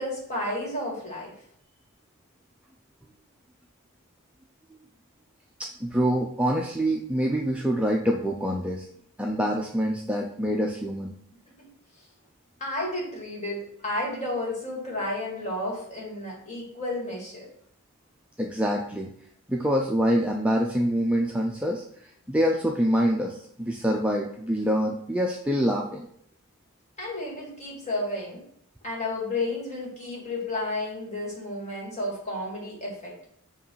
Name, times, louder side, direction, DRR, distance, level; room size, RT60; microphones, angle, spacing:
voice 1, 0.0-1.3 11.6-11.7 12.6-17.5 27.0-28.4 28.8-33.1, left 1 dB, 30° left, -4 dB, 2.3 m, -32 dB
voice 2, 5.6-8.9 9.2-11.1 18.4-19.1 19.5-26.1, equal, 5° right, 0 dB, 0.4 m, -26 dB
7.1 x 3.0 x 5.5 m, 0.68 s
head